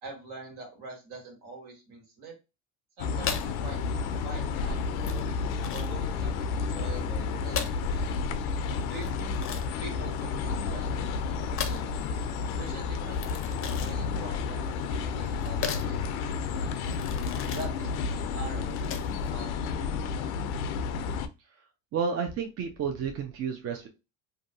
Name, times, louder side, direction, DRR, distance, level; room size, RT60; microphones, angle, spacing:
voice 1, 0.0-2.3 3.0-5.3 5.7-8.2 8.8-9.4 9.8-12.0 12.6-16.9 17.5-19.9, right 3 dB, 70° right, 1 dB, 1.6 m, -45 dB
sound 1, 3.0-21.3, left 5 dB, 80° left, 0.5 m, -31 dB
sound 2, 3.2-19.3, left 7 dB, 35° left, 0.5 m, -39 dB
voice 2, 21.9-23.9, right 6 dB, 35° right, 4 dB, 0.5 m, -31 dB
2.6 x 2.3 x 2.5 m, 0.27 s
supercardioid pair, 80°, 41 cm